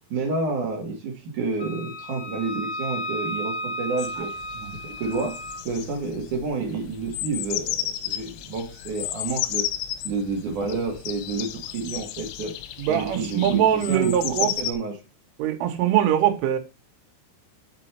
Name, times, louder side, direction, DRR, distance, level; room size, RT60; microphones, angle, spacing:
voice 1, 0.1-4.3 4.8-5.4 5.6-9.7 10.0-12.5 12.9-15.0, right 3 dB, 60° right, 2.2 m, -29 dB
Wind instrument woodwind instrument, 1.6-5.6, equal, 55° left, 2.2 m, -33 dB
sound 1, 4.0-14.7, left 12 dB, 80° left, 2.8 m, -33 dB
voice 2, 12.8-14.5 15.4-16.6, right 10 dB, 80° right, 3.5 m, -22 dB
6.8 x 5.2 x 4.4 m
omnidirectional pair, 5.7 m